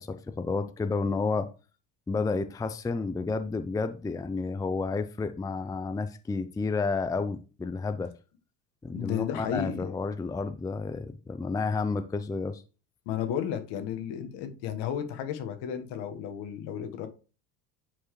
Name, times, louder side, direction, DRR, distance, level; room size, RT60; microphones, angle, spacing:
voice 1, 0.0-1.5 2.1-8.1 8.8-12.6, left 4 dB, 10° left, 0.5 m, -31 dB
voice 2, 8.9-9.9 13.0-17.1, left 9 dB, 65° left, 1.5 m, -33 dB
9.7 x 4.6 x 3.2 m
supercardioid pair, 85°, 43 cm